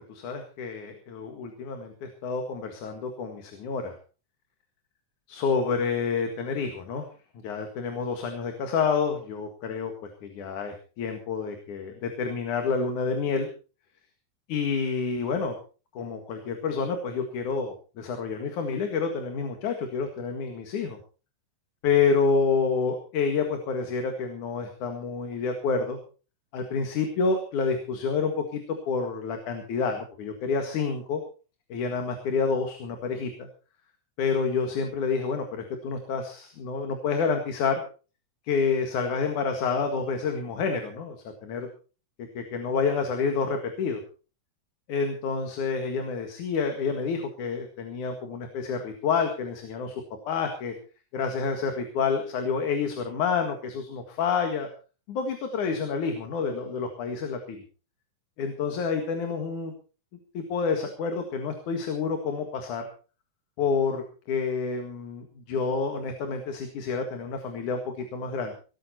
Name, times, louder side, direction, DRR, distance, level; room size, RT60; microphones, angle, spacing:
voice 1, 0.1-4.0 5.3-7.1 7.4-13.5 14.5-15.6 15.9-21.0 21.8-26.0 26.5-31.2 31.7-33.5 34.2-37.8 38.5-41.2 41.4-41.7 42.2-44.0 44.9-50.7 51.1-54.7 55.1-57.6 58.4-59.7 60.3-62.8 63.6-68.5, left 5 dB, 75° left, 5 dB, 3.3 m, -28 dB
18.5 x 13.5 x 4.3 m, 0.37 s
omnidirectional pair, 3.6 m